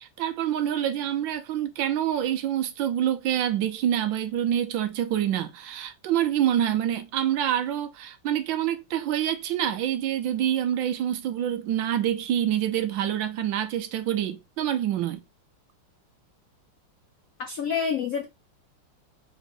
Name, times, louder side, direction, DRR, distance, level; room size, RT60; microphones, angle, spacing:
voice 1, 0.0-15.2, right 10 dB, 75° right, 1.3 m, -26 dB
voice 2, 17.4-18.2, left 6 dB, 80° left, 0.7 m, -27 dB
4.0 x 3.1 x 4.2 m
omnidirectional pair, 2.3 m